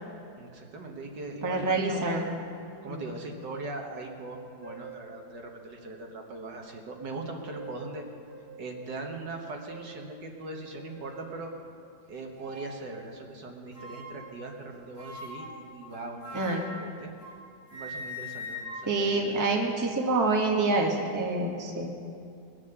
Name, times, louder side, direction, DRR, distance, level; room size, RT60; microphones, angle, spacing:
voice 1, 0.4-2.2 2.8-8.0 8.6-11.5 12.1-17.1 17.7-19.5, right 2 dB, 65° right, 2 dB, 1.9 m, -40 dB
voice 2, 1.4-2.3 2.9-3.0 16.3-16.6 18.8-21.9, right 3 dB, 10° right, 0 dB, 1.1 m, -27 dB
sound 1, 4.2-4.3 4.6-5.0 5.7-5.8 7.1-7.9 8.3-8.4 8.9-9.1 9.7-9.9 10.6-11.3 12.3-12.8 13.7-14.3 15.0-17.4 17.7-20.0, left 1 dB, 15° left, 3.4 m, -43 dB
21.5 x 7.3 x 6.8 m, 2.4 s
omnidirectional pair, 2.1 m